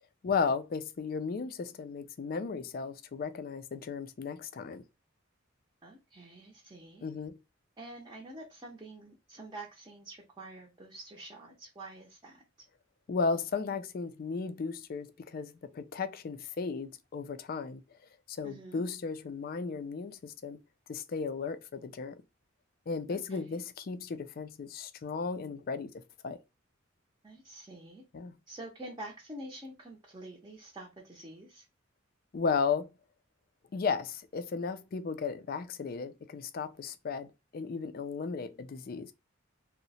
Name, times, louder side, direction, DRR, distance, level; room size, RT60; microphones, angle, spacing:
voice 1, 0.2-4.8 7.0-7.4 13.1-17.8 18.3-20.6 20.9-22.2 22.9-25.9 26.2-26.4 28.1-28.3 32.3-32.9 33.7-39.1, left 5 dB, 45° left, 0.3 m, -35 dB
voice 2, 5.8-7.0 7.8-12.4 18.4-18.8 23.1-23.6 27.2-28.0 28.5-31.6, right 1 dB, 20° right, 0.6 m, -47 dB
2.8 x 2.1 x 4.0 m
head